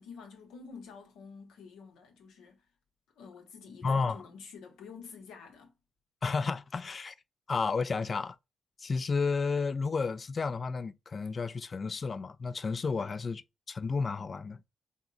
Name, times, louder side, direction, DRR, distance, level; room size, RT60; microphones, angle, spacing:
voice 1, 0.0-2.7 3.2-5.7 13.0-13.2, left 5 dB, 80° left, 0.7 m, -49 dB
voice 2, 3.8-4.2 6.2-7.1 7.5-8.4 8.8-13.4 13.7-14.6, left 4 dB, 45° left, 0.3 m, -31 dB
3.6 x 2.0 x 2.5 m
supercardioid pair, 60°, 0 cm